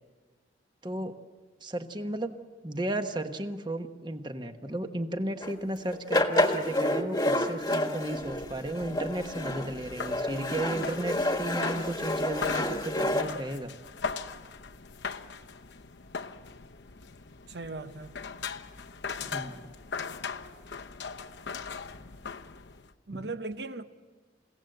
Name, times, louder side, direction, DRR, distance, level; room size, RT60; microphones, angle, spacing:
voice 1, 0.8-1.2 1.6-2.3 2.6-13.7 19.2-19.6 23.1-23.3, right 1 dB, 25° right, 1.2 m, -34 dB
music stand, 5.4-5.5 5.9-13.2, left 1 dB, 20° left, 1.4 m, -29 dB
sound 1, 8.1-22.9, left 5 dB, 75° left, 0.9 m, -40 dB
voice 2, 17.5-18.1 23.1-23.8, right 3 dB, 65° right, 1.0 m, -38 dB
29.0 x 17.0 x 7.9 m
head